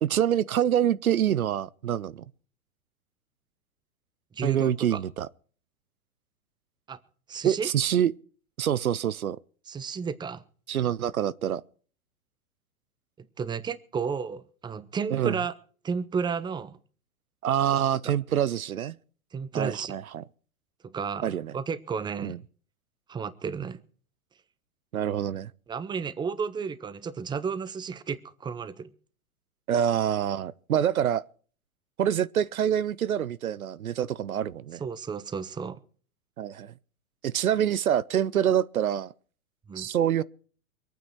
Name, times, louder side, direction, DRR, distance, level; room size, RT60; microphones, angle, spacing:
voice 1, 0.0-2.2 4.4-5.3 7.4-8.1 8.6-9.4 10.7-11.6 15.1-15.4 17.4-18.9 19.5-20.2 21.2-21.5 22.2-22.4 24.9-25.5 29.7-31.2 32.0-34.8 36.4-36.7 37.2-39.1 39.8-40.2, right 10 dB, 80° right, 0.7 m, -26 dB
voice 2, 4.3-5.0 6.9-7.0 7.3-7.7 9.7-10.4 13.2-15.5 15.8-16.8 18.0-18.1 19.3-20.0 20.8-22.4 23.1-23.8 25.7-28.9 34.8-35.8 39.7-39.9, right 6 dB, 10° right, 0.8 m, -32 dB
23.5 x 9.3 x 4.6 m
figure-of-eight pair, 105°, 42 cm